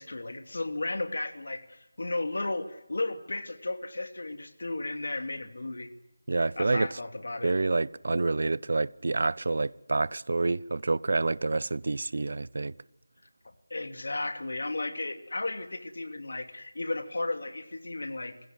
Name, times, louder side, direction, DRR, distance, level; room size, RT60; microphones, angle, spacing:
voice 1, 0.0-5.9 6.3-7.6 13.7-18.5, left 2 dB, 65° left, 2.6 m, -34 dB
voice 2, 6.3-6.9 7.4-12.7, right 3 dB, 55° right, 0.7 m, -28 dB
27.5 x 16.0 x 7.9 m
figure-of-eight pair, 170°, 0 cm